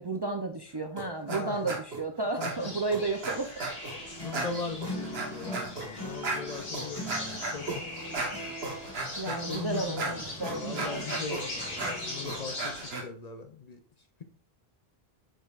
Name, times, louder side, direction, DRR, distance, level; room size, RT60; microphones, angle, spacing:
voice 1, 0.0-3.5 9.2-11.3, right 3 dB, 35° right, 4 dB, 0.5 m, -33 dB
sound 1, 1.0-1.4 1.7-2.0 2.4-4.0 4.3-13.0, right 3 dB, 70° right, 1.4 m, -36 dB
voice 2, 1.3-1.7 2.4-2.7 4.1-7.9 9.3-10.2 10.5-12.8 13.0-13.8, left 5 dB, 45° left, 7 dB, 0.6 m, -39 dB
sound 2, 2.5-12.9, left 1 dB, 65° left, 2.2 m, -41 dB
sound 3, 3.9-12.5, left 1 dB, 20° left, 1.7 m, -43 dB
7.2 x 5.4 x 2.4 m, 0.44 s
omnidirectional pair, 1.1 m